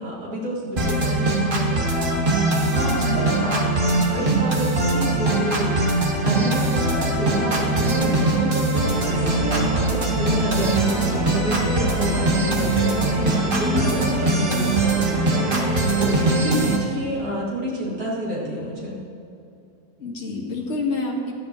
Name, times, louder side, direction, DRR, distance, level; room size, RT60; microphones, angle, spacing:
voice 1, 0.0-1.9 2.1-5.8 6.2-15.1 15.6-19.0, equal, 60° right, -7 dB, 3.2 m, -30 dB
sound 1, 0.8-16.8, right 2 dB, 30° right, 1.7 m, -21 dB
voice 2, 2.9-3.2 13.6-14.1 20.0-21.3, left 3 dB, 45° left, -1 dB, 2.0 m, -27 dB
sound 2, 9.1-13.2, right 2 dB, 75° left, 2.6 m, -31 dB
19.0 x 12.5 x 3.1 m, 2.7 s
omnidirectional pair, 1.8 m